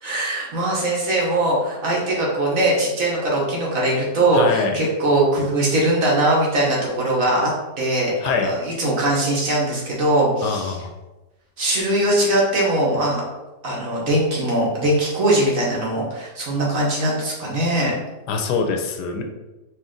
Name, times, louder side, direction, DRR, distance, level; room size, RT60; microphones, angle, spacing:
voice 1, 0.0-7.5 7.8-8.1 8.4-10.8 11.6-13.2 13.6-17.9, right 1 dB, 55° right, -4 dB, 1.4 m, -21 dB
voice 2, 4.3-4.8 8.2-8.5 10.4-10.9 18.3-19.2, left 5 dB, 80° left, 3 dB, 1.1 m, -24 dB
4.3 x 2.6 x 3.7 m, 1.1 s
omnidirectional pair, 1.8 m